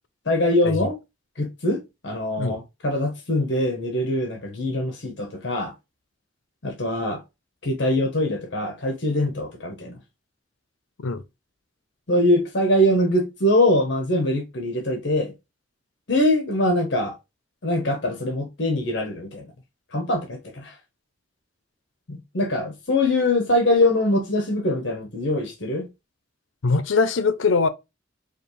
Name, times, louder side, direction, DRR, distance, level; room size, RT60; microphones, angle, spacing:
voice 1, 0.3-1.0 1.4-5.7 6.6-7.2 7.6-10.0 12.1-15.3 16.1-17.2 17.6-19.5 19.9-20.7 22.1-25.9, left 1 dB, 65° left, 1.0 m, -23 dB
voice 2, 26.6-27.7, left 4 dB, 85° left, 0.6 m, -21 dB
5.0 x 2.4 x 3.1 m
head